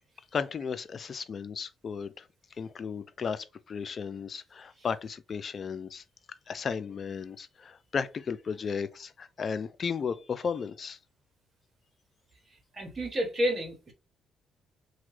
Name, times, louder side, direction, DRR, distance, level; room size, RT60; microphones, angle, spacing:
voice 1, 0.3-2.2 2.6-6.0 6.5-11.0, left 6 dB, 45° left, 0.3 m, -34 dB
voice 2, 12.7-13.9, equal, 35° right, 1.2 m, -30 dB
2.9 x 2.1 x 3.1 m
cardioid pair, 90°, 0 cm